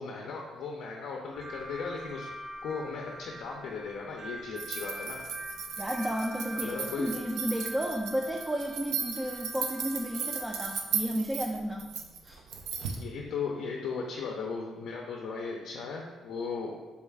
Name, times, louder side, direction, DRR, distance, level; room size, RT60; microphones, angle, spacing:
voice 1, 0.0-2.3 2.6-5.2 6.6-7.1 13.0-16.7, left 5 dB, 75° left, 0 dB, 0.4 m, -37 dB
sound 1, 1.3-10.8, right 1 dB, 55° right, 1.1 m, -44 dB
sound 2, 4.6-13.0, right 6 dB, 85° right, 0.4 m, -36 dB
voice 2, 5.8-11.9 12.2-12.4, equal, 10° right, 1 dB, 0.3 m, -33 dB
4.2 x 2.3 x 3.3 m, 1.2 s
cardioid pair, 90°, 0 cm